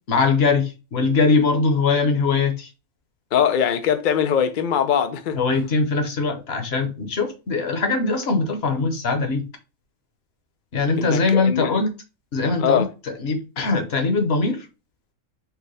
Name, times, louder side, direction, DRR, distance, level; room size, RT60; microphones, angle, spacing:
voice 1, 0.1-2.7 5.3-9.4 10.7-11.9 12.3-14.7, left 4 dB, 50° left, 1.0 m, -21 dB
voice 2, 3.3-5.4 11.0-11.7 12.6-12.9, left 8 dB, 80° left, 0.4 m, -21 dB
4.7 x 2.2 x 4.7 m
omnidirectional pair, 1.5 m